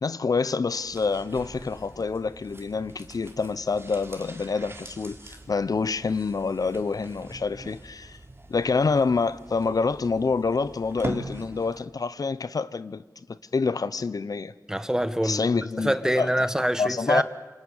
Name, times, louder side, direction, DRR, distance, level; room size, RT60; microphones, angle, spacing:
voice 1, 0.0-8.2 8.5-13.0 13.3-14.5 15.2-16.3 16.8-17.2, left 4 dB, 70° left, 0.8 m, -27 dB
sound 1, 0.7-11.9 12.2-12.3, right 2 dB, 40° right, 3.7 m, -42 dB
voice 2, 14.7-17.2, equal, 10° right, 1.5 m, -25 dB
28.5 x 25.5 x 7.3 m
wide cardioid pair, 75°, 6 cm